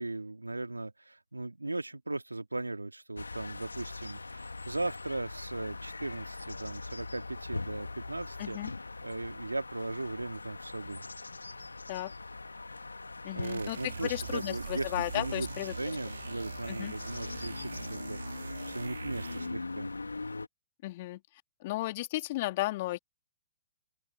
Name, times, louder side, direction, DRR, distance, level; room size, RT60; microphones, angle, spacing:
voice 1, 0.0-8.6 9.0-11.0 13.3-15.5 15.8-19.9, right 2 dB, 90° right, 2.2 m, -38 dB
sound 1, 3.2-20.5, left 3 dB, 85° left, 2.1 m, -42 dB
voice 2, 8.4-8.7 11.9-12.1 13.2-15.7 16.7-16.9 20.8-21.2 21.6-23.0, left 18 dB, 45° left, 3.0 m, -34 dB
sound 2, 13.4-19.7, right 6 dB, 70° right, 2.2 m, -43 dB
open air
figure-of-eight pair, 115°, 0 cm